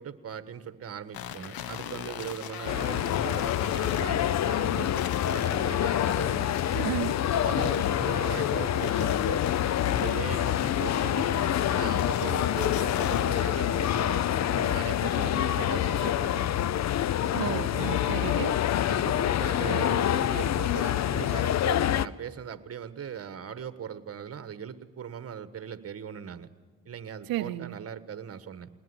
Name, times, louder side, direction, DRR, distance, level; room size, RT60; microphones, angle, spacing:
voice 1, 0.0-6.5 6.9-7.0 7.4-9.4 9.8-16.8 18.9-26.5 26.8-28.7, right 8 dB, 40° right, 13 dB, 1.5 m, -39 dB
sound 1, 1.1-13.4, left 10 dB, 80° left, 1.2 m, -41 dB
sound 2, 2.7-22.1, left 11 dB, 50° left, 0.6 m, -26 dB
voice 2, 6.7-7.2 17.3-18.5 27.3-27.8, right 14 dB, 75° right, 9 dB, 0.7 m, -32 dB
20.5 x 20.0 x 9.8 m, 1.3 s
cardioid pair, 85°, 35 cm